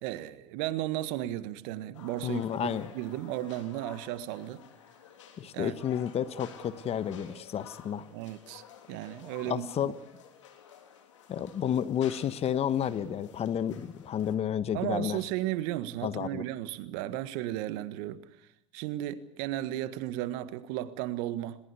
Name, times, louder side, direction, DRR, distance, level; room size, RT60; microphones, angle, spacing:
voice 1, 0.0-4.6 5.5-5.7 8.1-8.6 8.9-9.7 14.7-18.2 18.7-21.6, right 14 dB, 65° right, 1.6 m, -34 dB
sound 1, 1.9-14.3, left 8 dB, 80° left, 3.3 m, -52 dB
voice 2, 2.2-2.9 5.4-8.0 9.4-9.9 11.3-15.2 16.0-16.4, left 9 dB, 40° left, 1.4 m, -31 dB
21.5 x 19.5 x 8.4 m
hypercardioid pair, 75°, 15 cm